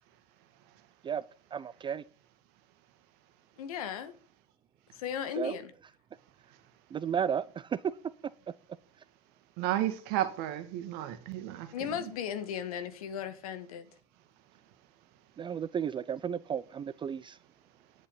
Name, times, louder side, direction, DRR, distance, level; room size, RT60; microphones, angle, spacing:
voice 1, 1.5-2.0 5.4-5.6 6.9-7.8 15.4-17.4, right 8 dB, 25° right, 0.5 m, -33 dB
voice 2, 3.6-4.1 5.0-5.7 11.7-13.9, left 8 dB, 70° left, 1.8 m, -36 dB
voice 3, 9.6-11.7, right 13 dB, 60° right, 1.8 m, -32 dB
10.5 x 8.6 x 5.3 m
hypercardioid pair, 80°, 19 cm